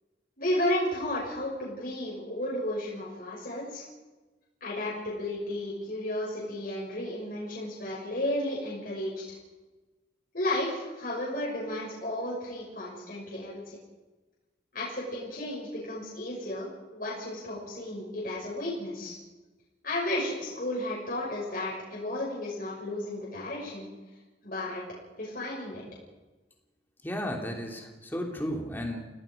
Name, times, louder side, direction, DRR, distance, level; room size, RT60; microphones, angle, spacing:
voice 1, 0.4-3.8 4.6-9.1 10.3-13.8 14.7-19.1 19.8-23.9 24.4-24.8 25.2-25.8, left 1 dB, 50° left, -5 dB, 6.3 m, -33 dB
voice 2, 27.0-29.1, equal, 10° left, 1 dB, 3.1 m, -34 dB
28.5 x 18.0 x 5.3 m, 1.2 s
head